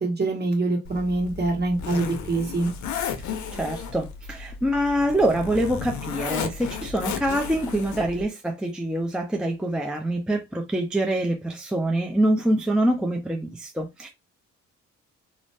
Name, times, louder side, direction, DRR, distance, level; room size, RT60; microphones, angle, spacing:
voice 1, 0.0-2.7, right 2 dB, 35° right, 1.3 m, -25 dB
Zipper (clothing), 0.8-8.2, left 6 dB, 75° left, 0.6 m, -34 dB
voice 2, 3.5-14.1, right 1 dB, 5° right, 0.4 m, -25 dB
2.6 x 2.0 x 3.2 m
cardioid pair, 90°, 30 cm